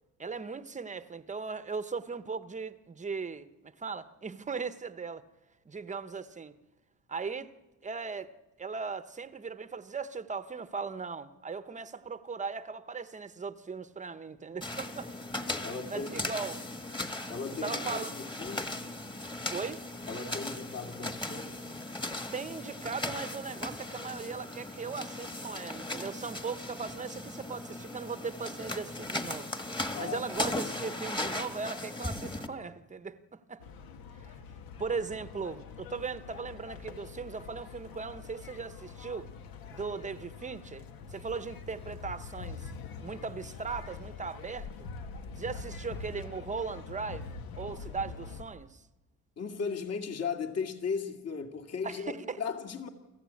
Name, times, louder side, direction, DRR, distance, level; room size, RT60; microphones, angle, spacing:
voice 1, 0.2-5.2 5.7-6.6 7.1-7.5 7.8-15.1 15.9-16.6 17.6-18.1 19.5-19.8 22.3-29.5 29.9-33.6 34.1-34.3 34.8-39.3 39.7-40.9 41.1-42.7 43.0-44.9 45.4-47.3 47.6-48.8 51.8-52.4, right 5 dB, 20° right, 1.0 m, -38 dB
sound 1, 14.6-32.5, left 2 dB, 15° left, 1.7 m, -37 dB
voice 2, 15.6-16.2 17.3-18.8 20.1-21.6 29.9-30.2 49.4-52.9, left 5 dB, 45° left, 2.4 m, -37 dB
sound 2, 33.6-48.4, left 5 dB, 70° left, 1.8 m, -44 dB
29.0 x 15.5 x 8.6 m
cardioid pair, 125°, 36 cm